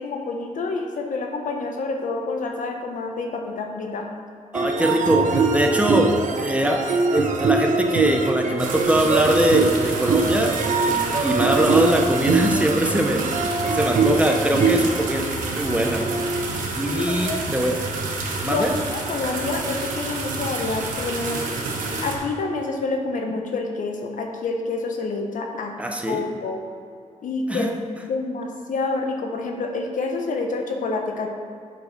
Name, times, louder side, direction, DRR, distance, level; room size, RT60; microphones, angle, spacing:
voice 1, 0.0-4.1 4.6-4.7 16.9-17.4 18.5-21.4 22.0-25.7 26.1-26.6 27.2-27.7 28.0-31.3, left 3 dB, 75° left, 2 dB, 1.2 m, -28 dB
voice 2, 4.5-6.8 7.1-10.5 11.2-13.2 13.7-15.2 15.5-16.0 16.7-17.7 18.4-18.7 25.8-26.2 27.5-27.7, right 1 dB, 10° right, 2 dB, 1.1 m, -22 dB
sound 1, 4.5-16.4, right 4 dB, 70° right, 0.9 m, -23 dB
sound 2, 8.6-22.2, right 3 dB, 85° right, 1.5 m, -29 dB
7.7 x 6.8 x 5.4 m, 2.3 s
cardioid pair, 70°, 14 cm